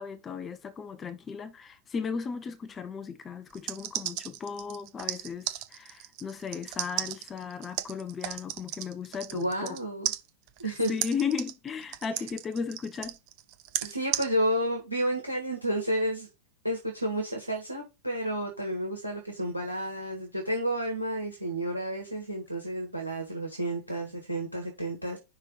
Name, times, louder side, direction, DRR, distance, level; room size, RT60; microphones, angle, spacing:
voice 1, 0.0-9.8 10.6-13.2, left 6 dB, 20° left, 0.5 m, -36 dB
sound 1, 3.5-9.8 10.0-14.3, right 13 dB, 45° right, 0.7 m, -34 dB
voice 2, 9.3-10.1 10.6-11.0 13.8-16.3 16.6-25.2, equal, 85° right, 1.5 m, -31 dB
5.7 x 3.2 x 5.3 m
figure-of-eight pair, 90°, 0 cm